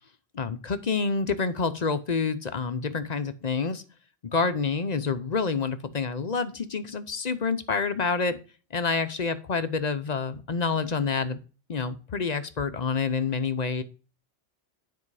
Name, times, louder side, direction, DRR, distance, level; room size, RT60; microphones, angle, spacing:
voice 1, 0.3-3.8 4.3-8.4 8.7-11.4 11.7-13.8, left 5 dB, 45° left, 11 dB, 0.7 m, -28 dB
9.8 x 4.6 x 4.8 m, 0.36 s
omnidirectional pair, 1.1 m